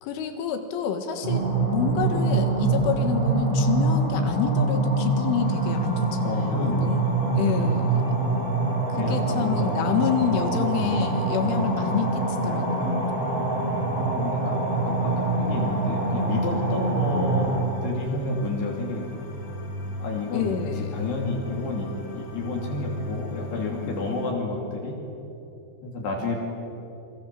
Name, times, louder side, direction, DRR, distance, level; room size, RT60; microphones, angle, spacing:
voice 1, 0.0-7.0 7.4-8.2 8.9-13.0 20.3-20.9, left 7 dB, 70° left, 7 dB, 4.0 m, -28 dB
sound 1, 1.2-17.6, right 3 dB, 30° right, 5.4 m, -25 dB
sound 2, 5.4-24.3, equal, 35° left, 2.4 m, -39 dB
voice 2, 6.2-7.0 7.4-7.8 9.0-9.8 10.7-11.0 14.2-17.5 17.8-19.1 20.0-24.9 25.8-26.4, left 3 dB, 55° left, 0 dB, 4.5 m, -30 dB
27.0 x 24.0 x 7.6 m, 3.0 s
omnidirectional pair, 6.0 m